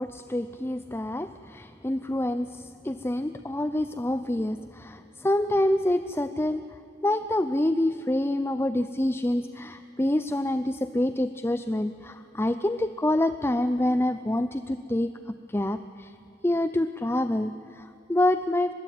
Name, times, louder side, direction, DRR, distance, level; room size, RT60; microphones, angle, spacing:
voice 1, 0.0-6.6 7.0-15.1 15.5-16.1 16.4-18.7, left 1 dB, 15° left, 11 dB, 0.6 m, -27 dB
23.0 x 21.5 x 9.4 m, 2.8 s
head